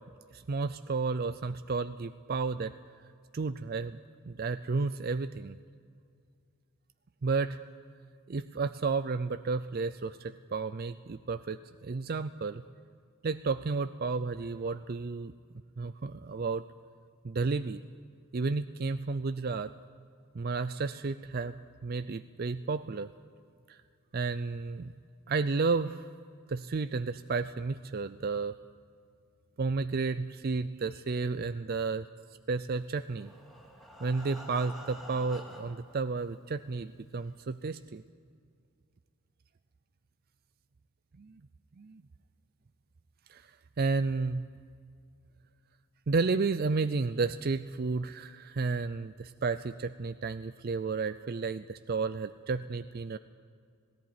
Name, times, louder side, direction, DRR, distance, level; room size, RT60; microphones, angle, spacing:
voice 1, 0.3-2.7 3.3-4.0 4.3-5.6 7.2-7.6 8.3-12.6 13.2-15.3 15.8-16.6 17.2-17.8 18.3-19.7 20.3-21.6 21.8-23.1 23.7-23.8 24.1-24.9 25.3-26.1 26.5-28.6 29.6-32.1 32.5-33.3 34.0-38.0 41.2-41.4 41.8-42.0 43.3-43.5 43.8-44.4 46.1-53.2, right 4 dB, 45° right, 12 dB, 0.4 m, -32 dB
Breathing, 33.0-36.0 36.7-36.8 37.2-37.3 37.7-37.8, equal, ahead, 2.8 m, -48 dB
18.0 x 17.5 x 9.5 m, 2.3 s
head